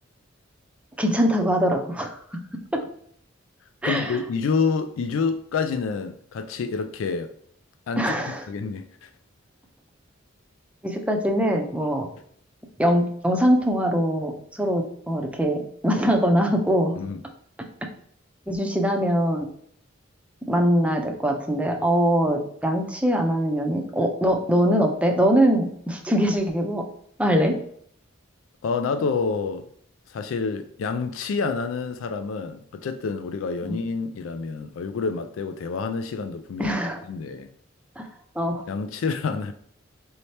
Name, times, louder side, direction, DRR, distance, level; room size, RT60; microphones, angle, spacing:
voice 1, 1.0-2.2 2.7-2.8 3.8-4.2 8.0-8.4 10.8-12.1 12.8-16.9 18.5-19.5 20.5-26.8 27.2-27.6 33.6-33.8 36.6-37.0 38.0-38.1 38.4-38.6, equal, 5° right, 0.5 m, -22 dB
voice 2, 3.8-7.3 7.9-9.1 17.0-17.2 28.6-29.7 30.1-36.7 37.1-37.5 38.7-39.5, left 5 dB, 80° left, 0.4 m, -28 dB
4.2 x 2.8 x 3.2 m
head